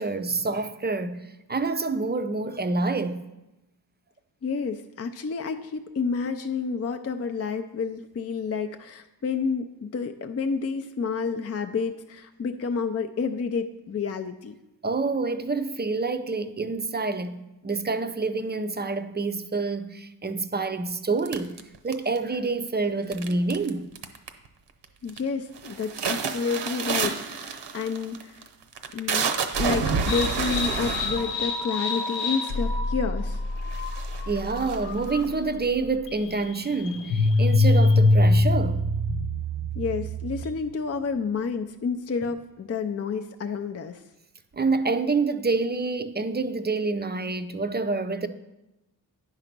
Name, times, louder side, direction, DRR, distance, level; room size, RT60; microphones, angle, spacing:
voice 1, 0.0-3.3 14.8-21.5 21.8-23.9 34.3-38.9 44.5-48.3, right 3 dB, 25° right, 0.5 m, -27 dB
voice 2, 4.4-14.5 25.0-28.4 28.9-33.4 39.7-44.0, left 5 dB, 35° left, 0.5 m, -30 dB
sound 1, 21.3-22.4 23.1-23.7 24.0-24.5 24.8-25.2 25.6-32.6 33.3-33.4 33.7-35.3, right 5 dB, 70° right, 0.8 m, -29 dB
sound 2, 30.1-40.7, left 2 dB, 85° left, 0.9 m, -25 dB
9.6 x 4.0 x 5.9 m
cardioid pair, 65°, 43 cm